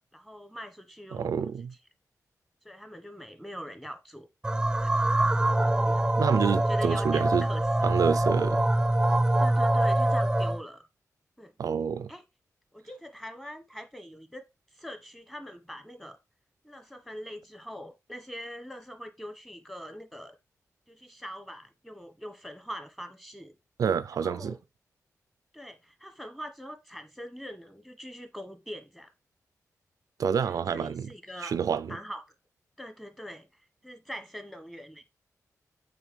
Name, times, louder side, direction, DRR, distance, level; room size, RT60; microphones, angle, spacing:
voice 1, 0.0-1.5 2.6-4.3 4.8-4.9 5.8-6.1 6.7-7.9 9.4-10.8 11.4-11.5 12.1-12.2 12.7-14.4 14.8-16.2 16.6-20.4 20.9-23.5 24.2-24.6 25.5-29.1 30.4-31.6 31.8-32.3 32.8-33.5 33.8-35.0, equal, 5° left, 1.4 m, -43 dB
voice 2, 1.1-1.7 6.2-7.5 7.8-8.7 11.6-12.1 23.8-24.5 30.2-31.1 31.4-32.0, right 7 dB, 80° right, 0.4 m, -28 dB
sound 1, 4.4-10.6, right 1 dB, 10° right, 0.4 m, -24 dB
8.8 x 4.1 x 4.6 m
wide cardioid pair, 115°, 6 cm